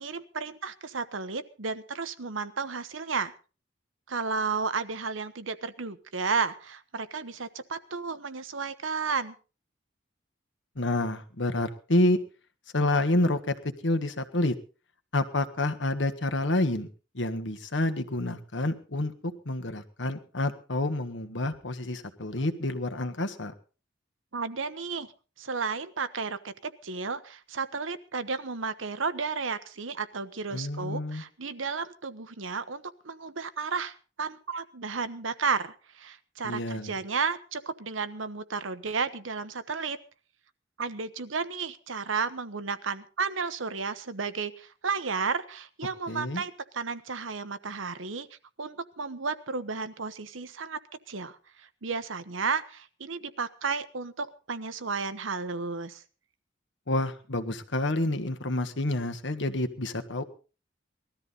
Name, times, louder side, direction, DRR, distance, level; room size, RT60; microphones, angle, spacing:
voice 1, 0.0-3.3 4.1-9.3 24.3-25.1 25.4-40.0 40.8-48.3 48.6-50.8 51.1-56.0, right 5 dB, 85° right, 12 dB, 1.1 m, -33 dB
voice 2, 10.7-12.2 12.7-14.6 15.1-16.9 17.1-23.5 30.5-31.2 36.4-36.9 46.1-46.4 56.9-60.2, left 1 dB, 65° left, 9 dB, 1.5 m, -28 dB
20.0 x 13.5 x 4.0 m, 0.35 s
head